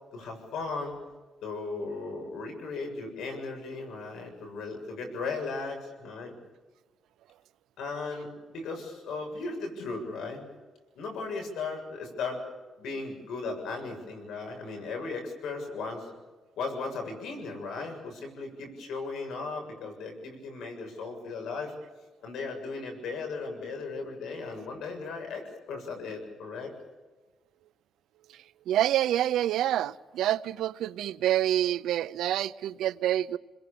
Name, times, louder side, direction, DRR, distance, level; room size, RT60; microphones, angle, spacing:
voice 1, 0.1-1.0 1.4-6.4 7.8-10.5 11.0-12.4 12.8-16.1 16.6-21.7 22.2-26.7, left 4 dB, 90° left, 7.5 m, -36 dB
voice 2, 28.7-33.4, right 12 dB, 85° right, 0.7 m, -27 dB
28.5 x 21.5 x 7.0 m
cardioid pair, 125°, 0 cm